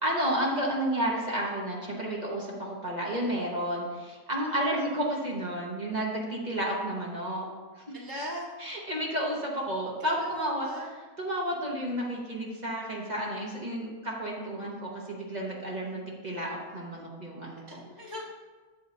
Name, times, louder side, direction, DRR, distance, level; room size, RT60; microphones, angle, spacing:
voice 1, 0.0-7.5 7.8-7.9 8.6-10.7 11.2-17.8, right 1 dB, 30° right, -3 dB, 1.5 m, -31 dB
voice 2, 7.9-8.6 10.0-10.9 17.8-18.2, left 1 dB, 20° left, -3 dB, 0.8 m, -38 dB
11.0 x 7.5 x 2.7 m, 1.3 s
omnidirectional pair, 1.5 m